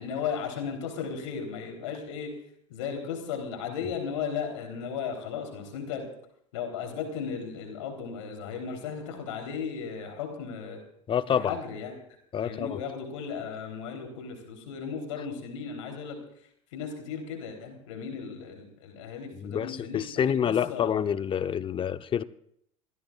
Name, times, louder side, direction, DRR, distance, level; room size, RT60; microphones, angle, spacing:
voice 1, 0.0-2.3 2.7-6.0 6.5-10.8 11.3-11.9 12.4-16.2 16.7-21.0, left 6 dB, 70° left, 3.6 m, -35 dB
voice 2, 11.1-11.5 12.3-12.8 19.4-22.2, left 8 dB, 30° left, 0.8 m, -27 dB
27.5 x 16.5 x 2.4 m
hypercardioid pair, 80°, 16 cm